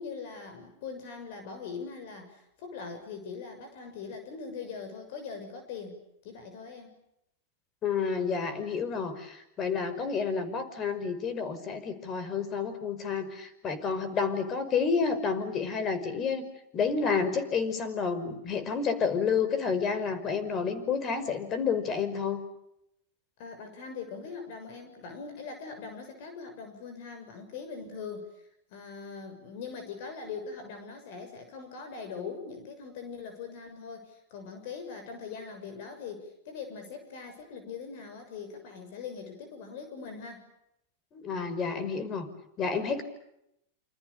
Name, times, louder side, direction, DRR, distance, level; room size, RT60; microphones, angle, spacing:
voice 1, 0.0-7.0 23.4-28.4 28.7-40.5, left 5 dB, 60° left, 8 dB, 6.8 m, -41 dB
voice 2, 7.8-16.5 16.7-22.4 41.1-42.3 42.6-43.0, left 5 dB, 35° left, 13 dB, 5.6 m, -30 dB
29.0 x 27.0 x 6.8 m, 0.81 s
hypercardioid pair, 105°, 0 cm